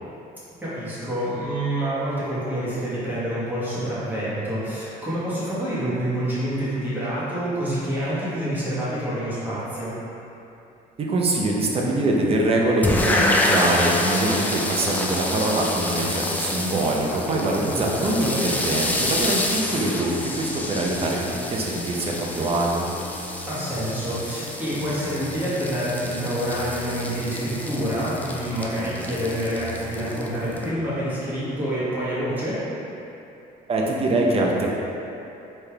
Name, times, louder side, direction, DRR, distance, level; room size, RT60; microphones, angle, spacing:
voice 1, 0.6-9.9 17.7-18.4 23.5-32.6, right 1 dB, 10° right, -11 dB, 1.4 m, -27 dB
voice 2, 11.0-22.9 33.7-34.7, right 2 dB, 35° right, -2 dB, 0.7 m, -23 dB
sound 1, 12.8-30.7, left 1 dB, 10° left, 0.4 m, -28 dB
4.2 x 3.4 x 3.4 m, 2.9 s
cardioid pair, 110°, 17 cm